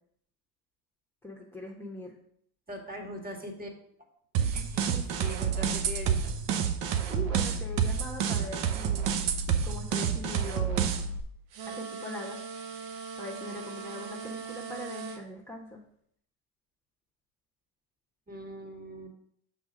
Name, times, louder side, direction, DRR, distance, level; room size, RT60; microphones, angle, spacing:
voice 1, 1.2-2.1 4.4-4.5 7.1-9.2 9.6-10.9 11.7-12.4 13.2-15.8, left 2 dB, 5° left, -3 dB, 1.2 m, -41 dB
voice 2, 2.7-3.7 4.5-6.3 18.3-19.2, equal, 20° right, 3 dB, 1.9 m, -41 dB
sound 1, 4.3-11.2, right 7 dB, 60° right, 1.0 m, -29 dB
sound 2, 11.5-15.2, right 6 dB, 80° right, 1.2 m, -40 dB
6.1 x 4.1 x 6.2 m, 0.68 s
hypercardioid pair, 70°, 48 cm